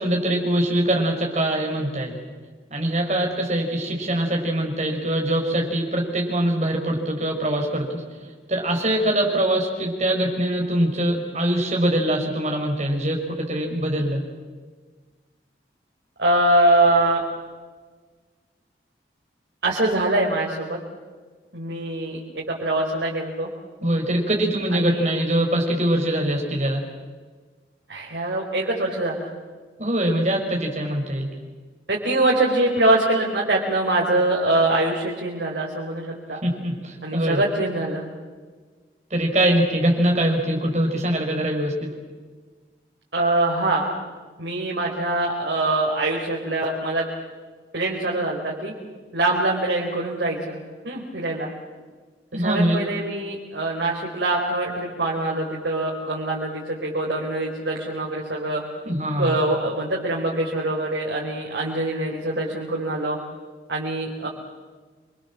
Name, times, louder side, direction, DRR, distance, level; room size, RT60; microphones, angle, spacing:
voice 1, 0.0-2.2 2.7-8.0 8.5-14.2 23.8-26.8 29.8-31.3 36.4-37.4 39.1-41.9 52.3-52.8 58.8-59.4, right 1 dB, 40° right, 1 dB, 5.9 m, -23 dB
voice 2, 16.2-17.2 19.6-20.8 21.5-23.5 24.7-25.2 27.9-29.3 31.9-36.4 37.0-38.0 43.1-43.8 44.4-47.1 47.7-48.7 49.1-50.6 50.8-51.5 52.3-58.6 59.2-63.2 63.7-64.3, right 2 dB, 75° right, -2 dB, 4.4 m, -23 dB
28.5 x 24.0 x 7.6 m, 1.4 s
head